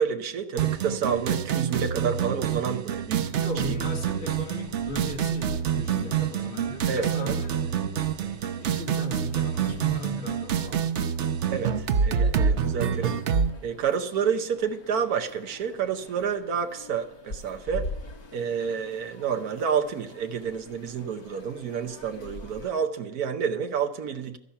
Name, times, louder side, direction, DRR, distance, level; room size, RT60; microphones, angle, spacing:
voice 1, 0.0-3.7 6.9-7.4 11.5-13.2 13.6-17.9 18.3-24.4, right 7 dB, 85° right, 1.4 m, -29 dB
sound 1, 0.6-13.5, right 7 dB, 60° right, 1.0 m, -27 dB
sound 2, 3.3-22.7, left 2 dB, 80° left, 2.3 m, -45 dB
voice 2, 3.4-11.0, left 2 dB, 65° left, 2.1 m, -38 dB
13.0 x 10.5 x 5.5 m
omnidirectional pair, 1.6 m